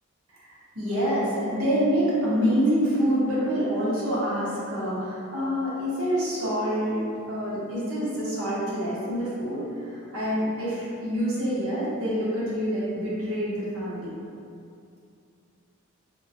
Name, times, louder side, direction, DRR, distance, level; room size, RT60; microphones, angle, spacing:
voice 1, 0.4-14.2, equal, 80° right, -8 dB, 0.9 m, -26 dB
3.7 x 2.2 x 2.6 m, 2.5 s
head